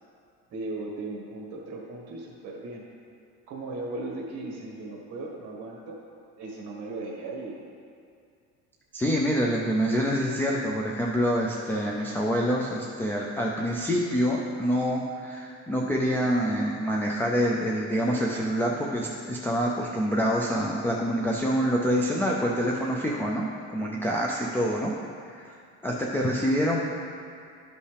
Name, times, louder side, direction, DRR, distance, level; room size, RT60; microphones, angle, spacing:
voice 1, 0.5-2.8 3.5-6.0 6.4-7.6, right 2 dB, 55° right, -2 dB, 1.5 m, -37 dB
voice 2, 8.9-23.5 23.7-24.9 25.2-25.5 25.8-26.8, equal, 5° left, -3 dB, 0.3 m, -26 dB
12.0 x 5.5 x 3.3 m, 2.4 s
cardioid pair, 165°, 30 cm